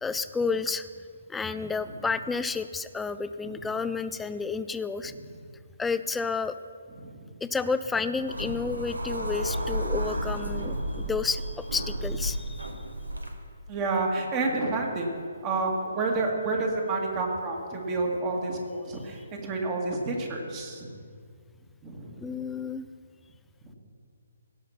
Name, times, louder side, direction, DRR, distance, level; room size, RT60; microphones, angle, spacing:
voice 1, 0.0-5.1 5.8-6.6 7.4-12.9 19.2-19.3 22.2-22.9, left 4 dB, 5° left, 11 dB, 0.3 m, -31 dB
sound 1, 8.1-13.3, equal, 85° right, 1.4 m, -32 dB
voice 2, 13.7-15.1 15.4-20.9 21.8-22.2, right 3 dB, 25° right, 1 dB, 2.0 m, -29 dB
17.0 x 5.8 x 5.8 m, 2.1 s
figure-of-eight pair, 135°, 0 cm